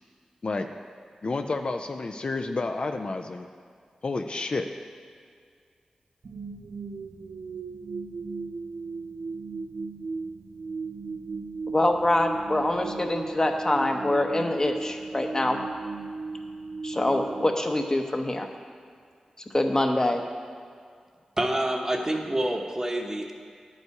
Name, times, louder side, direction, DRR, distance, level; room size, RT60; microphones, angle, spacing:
voice 1, 1.2-3.5 4.0-4.7, left 3 dB, 50° left, 6 dB, 0.4 m, -30 dB
sound 1, 6.2-18.4, right 4 dB, 70° right, 0.3 m, -36 dB
voice 2, 11.7-15.6 16.8-18.5 19.5-20.2, left 1 dB, 30° left, 4 dB, 0.8 m, -25 dB
voice 3, 21.4-23.3, right 1 dB, 25° right, 2 dB, 1.0 m, -27 dB
10.5 x 5.4 x 4.7 m, 2.1 s
cardioid pair, 50°, 2 cm